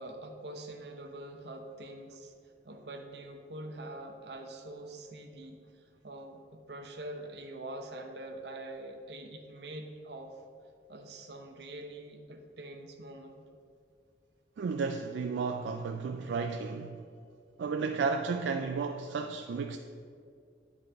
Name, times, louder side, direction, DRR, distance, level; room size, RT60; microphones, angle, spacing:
voice 1, 0.0-2.3 2.6-10.4 10.9-13.4, right 1 dB, 70° right, 4 dB, 0.8 m, -44 dB
voice 2, 14.6-17.0 17.6-19.8, right 4 dB, 85° right, 5 dB, 0.3 m, -33 dB
9.6 x 3.8 x 4.5 m, 2.2 s
head